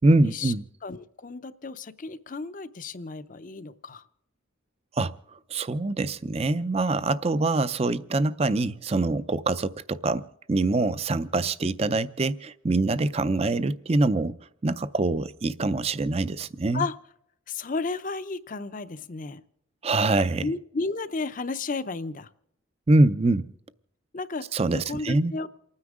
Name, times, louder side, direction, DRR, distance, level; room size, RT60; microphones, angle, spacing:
voice 1, 0.0-0.6 5.0-5.1 5.5-10.2 10.5-14.4 14.6-16.8 19.8-20.5 22.9-23.5 24.5-25.3, right 2 dB, 30° right, 0.5 m, -24 dB
voice 2, 0.8-4.1 16.7-16.9 17.5-19.4 20.4-22.3 24.1-24.4 24.7-25.5, left 3 dB, 40° left, 0.6 m, -33 dB
28.5 x 9.7 x 3.6 m
head